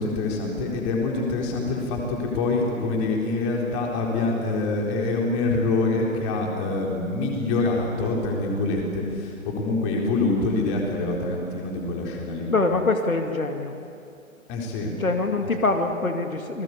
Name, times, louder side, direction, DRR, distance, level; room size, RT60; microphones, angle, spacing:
voice 1, 0.0-12.5 14.5-15.0, left 3 dB, 20° left, 0 dB, 4.0 m, -25 dB
voice 2, 12.5-13.8 15.0-16.6, left 3 dB, 75° left, 5 dB, 2.4 m, -24 dB
28.0 x 20.5 x 8.4 m, 2.5 s
figure-of-eight pair, 135°, 42 cm